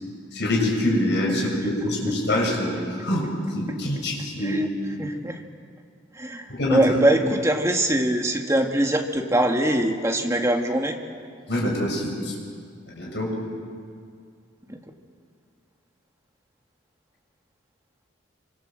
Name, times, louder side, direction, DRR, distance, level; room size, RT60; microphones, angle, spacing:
voice 1, 0.3-4.6 6.5-6.8 11.5-12.4 12.9-13.4, left 1 dB, 60° left, -1 dB, 7.1 m, -25 dB
voice 2, 5.0-5.4 6.1-11.0 14.7-14.8, right 1 dB, 15° right, 2 dB, 1.9 m, -23 dB
27.0 x 25.0 x 7.7 m, 2.2 s
head